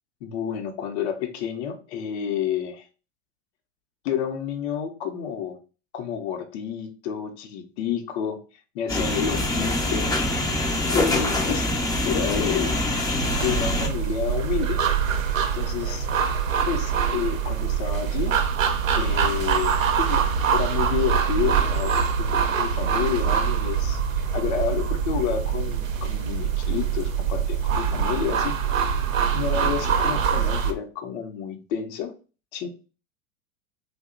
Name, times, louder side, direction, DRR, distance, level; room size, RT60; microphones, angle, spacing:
voice 1, 0.2-2.8 4.0-5.6 5.9-8.4 8.7-10.1 10.9-11.7 12.0-12.8 13.4-14.8 15.5-16.1 16.7-18.3 18.9-20.3 20.5-24.0 24.3-28.6 29.3-32.1 32.5-32.7, left 8 dB, 60° left, 5 dB, 0.7 m, -29 dB
sound 1, 8.9-13.9, left 1 dB, 10° left, 0.5 m, -24 dB
sound 2, 13.2-30.7, right 7 dB, 80° right, 0.6 m, -24 dB
2.7 x 2.1 x 3.7 m, 0.34 s
hypercardioid pair, 95°, 38 cm